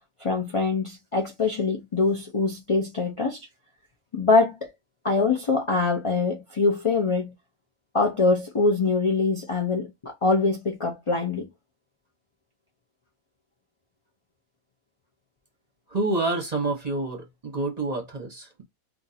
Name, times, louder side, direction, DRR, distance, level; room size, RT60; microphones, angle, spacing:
voice 1, 0.2-3.5 4.1-4.7 5.0-7.3 7.9-11.5, left 3 dB, 45° left, 0.4 m, -24 dB
voice 2, 15.9-18.6, right 2 dB, 35° right, 0.8 m, -28 dB
2.7 x 2.6 x 4.0 m
omnidirectional pair, 1.5 m